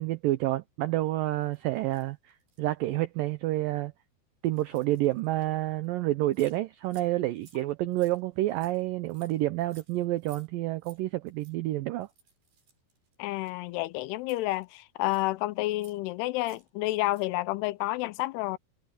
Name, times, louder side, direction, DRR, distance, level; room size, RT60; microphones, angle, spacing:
voice 1, 0.0-3.9 4.4-12.1, right 16 dB, 85° right, 2.0 m, -29 dB
sound 1, 1.4-2.7 3.3-3.4 4.4-5.4 5.8-5.9 6.1-6.6 6.8-7.1 7.3-10.5 10.7-11.0 11.3-11.5 12.0-13.8 14.2-15.3 15.7-16.1 16.4-16.7 17.0-17.3, right 6 dB, 60° right, 9.8 m, -60 dB
voice 2, 13.2-18.6, left 18 dB, 80° left, 2.6 m, -30 dB
omnidirectional pair, 4.8 m